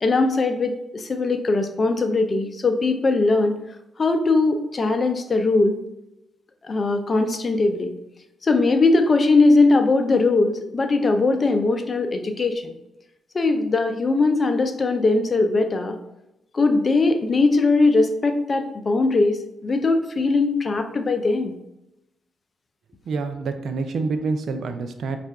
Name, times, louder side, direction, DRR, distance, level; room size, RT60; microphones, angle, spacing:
voice 1, 0.0-3.6 4.0-5.8 6.7-7.9 8.4-12.7 13.3-16.0 16.5-21.5, left 3 dB, 45° left, 7 dB, 0.5 m, -20 dB
voice 2, 23.1-25.2, right 4 dB, 70° right, 8 dB, 0.4 m, -27 dB
5.3 x 2.5 x 3.5 m, 0.89 s
cardioid pair, 60°, 0 cm